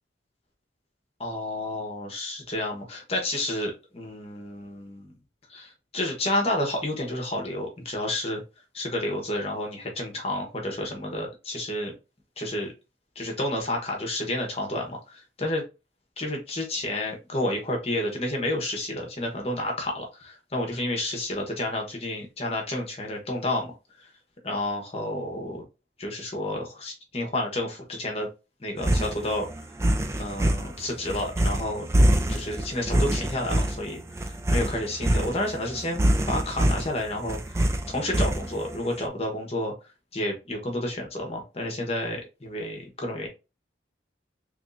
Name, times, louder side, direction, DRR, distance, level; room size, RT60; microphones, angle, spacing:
voice 1, 1.2-5.1 5.5-8.4 8.7-11.9 12.4-12.7 13.1-15.6 16.2-23.7 24.4-25.6 26.0-28.3 28.6-29.5 30.2-31.9 32.3-39.7 40.1-43.3, left 1 dB, 35° left, 1 dB, 1.0 m, -30 dB
sound 1, 28.8-38.8, right 1 dB, 15° right, 0.3 m, -25 dB
3.5 x 3.1 x 2.6 m, 0.28 s
head